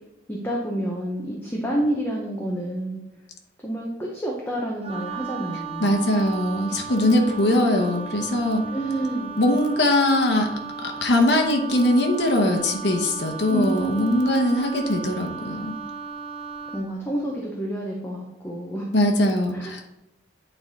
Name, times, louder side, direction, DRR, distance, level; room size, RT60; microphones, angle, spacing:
voice 1, 0.3-3.0 3.6-6.0 8.7-9.3 13.5-14.1 16.7-18.9 19.5-19.8, right 1 dB, 10° left, -2 dB, 0.8 m, -29 dB
Wind instrument woodwind instrument, 4.8-16.9, right 5 dB, 30° right, 0.6 m, -36 dB
voice 2, 5.8-8.7 9.4-10.5 10.8-15.7 18.9-19.8, left 1 dB, 65° left, 2 dB, 0.9 m, -21 dB
8.7 x 3.4 x 4.0 m, 0.92 s
head